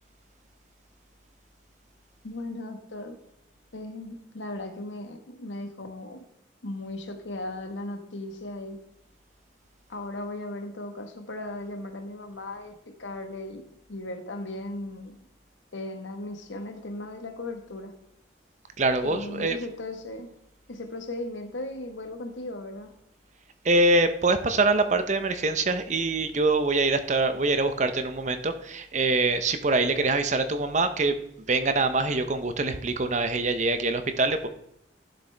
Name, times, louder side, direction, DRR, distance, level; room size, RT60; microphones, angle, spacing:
voice 1, 2.2-3.2 3.7-6.3 6.6-8.8 9.9-13.6 13.9-15.2 15.7-17.9 19.0-20.3 20.7-22.9, left 2 dB, 85° left, 6 dB, 1.3 m, -37 dB
voice 2, 18.8-19.6 23.6-31.2 31.5-34.5, right 2 dB, 40° right, 9 dB, 0.7 m, -24 dB
11.0 x 6.7 x 3.4 m, 0.78 s
head